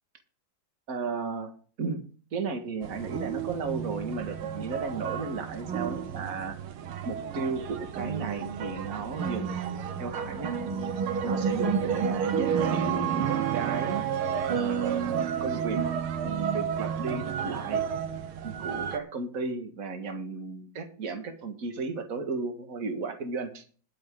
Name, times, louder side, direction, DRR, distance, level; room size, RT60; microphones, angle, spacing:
voice 1, 0.9-1.5 1.8-2.0 2.3-6.6 7.1-10.8 11.2-14.0 14.5-15.8 16.2-17.8 18.4-23.6, right 4 dB, 45° right, 6 dB, 2.0 m, -34 dB
sound 1, 2.8-19.0, right 7 dB, 90° right, 1.9 m, -31 dB
21.0 x 7.1 x 3.7 m, 0.42 s
omnidirectional pair, 2.2 m